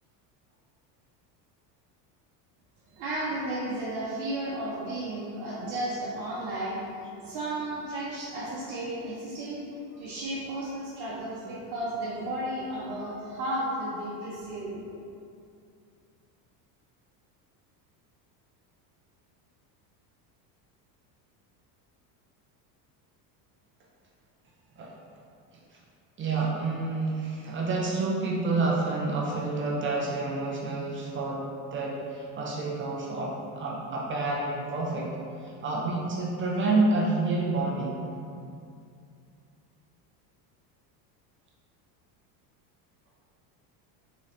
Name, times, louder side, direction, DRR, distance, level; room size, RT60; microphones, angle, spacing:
voice 1, 2.9-6.9 7.2-9.6 10.0-14.8, right 1 dB, 55° right, -7 dB, 0.8 m, -33 dB
voice 2, 26.2-35.1 35.4-38.0, right 3 dB, 25° right, -4 dB, 0.4 m, -29 dB
3.9 x 3.1 x 2.6 m, 2.4 s
supercardioid pair, 120°, 49 cm